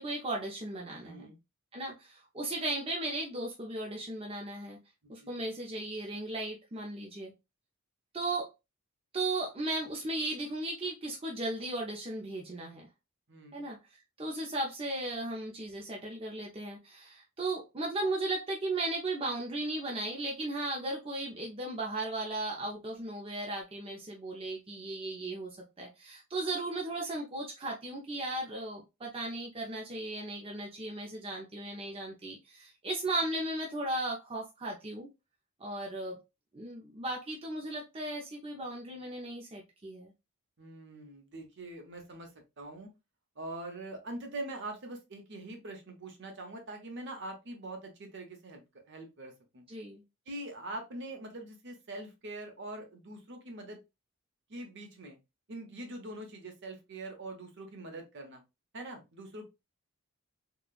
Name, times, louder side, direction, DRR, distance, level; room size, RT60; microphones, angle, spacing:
voice 1, 0.0-1.3 1.7-4.8 5.1-7.3 8.1-8.5 9.1-12.9 13.5-13.8 14.2-35.1 35.6-36.2 36.5-40.1 49.7-50.0, right 2 dB, 25° right, -2 dB, 0.5 m, -36 dB
voice 2, 1.0-1.4 5.1-5.4 13.3-13.6 40.6-42.9 43.4-49.6 50.3-53.8 54.5-55.2 55.5-58.4 58.7-59.4, right 2 dB, 55° right, 4 dB, 0.8 m, -43 dB
3.7 x 2.3 x 2.4 m, 0.24 s
head